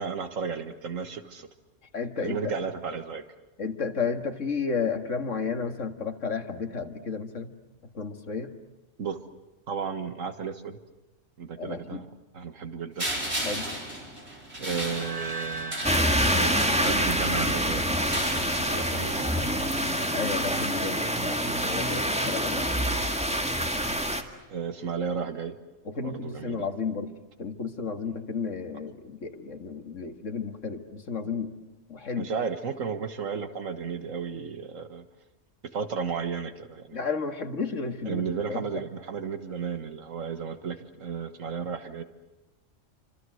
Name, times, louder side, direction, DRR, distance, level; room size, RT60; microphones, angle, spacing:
voice 1, 0.0-1.5 2.2-3.2 9.0-9.2 9.7-10.8 11.4-12.1 12.3-13.1 14.6-16.0 16.3-18.1 18.5-19.8 24.5-25.6 26.0-26.7 32.2-35.1 35.7-37.0 38.0-42.0, right 6 dB, 80° right, 9 dB, 1.9 m, -33 dB
voice 2, 1.9-2.4 3.6-7.5 7.9-8.5 11.6-12.0 13.4-13.7 20.1-22.9 25.9-27.1 27.4-31.5 31.9-32.3 36.9-38.8, left 5 dB, 70° left, 7 dB, 2.3 m, -32 dB
sound 1, 13.0-17.4 18.0-19.3, right 1 dB, 55° right, 6.1 m, -35 dB
sound 2, 14.7-17.9, right 2 dB, 30° right, 1.7 m, -40 dB
sound 3, 15.8-24.2, equal, 5° right, 2.0 m, -26 dB
29.5 x 25.5 x 7.8 m, 1.0 s
omnidirectional pair, 1.3 m